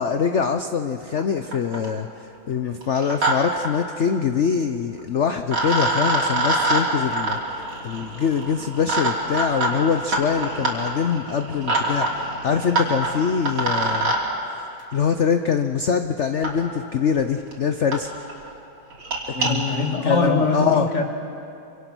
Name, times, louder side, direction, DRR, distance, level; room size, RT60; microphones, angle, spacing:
voice 1, 0.0-2.1 2.5-14.1 14.9-18.1 19.3-20.9, left 6 dB, 75° left, 8 dB, 0.6 m, -24 dB
sound 1, 1.2-1.3 1.5-2.0 2.8-3.3 3.6-3.7 5.0-5.1 5.5-14.2 15.5-15.6 16.4-16.5 17.2-17.3 17.5-17.6 17.9-18.0 18.3-18.5 18.9-19.5, right 2 dB, 80° right, 4.1 m, -25 dB
voice 2, 19.3-21.0, left 3 dB, 35° left, 3 dB, 2.3 m, -22 dB
26.0 x 25.5 x 6.1 m, 2.8 s
omnidirectional pair, 2.2 m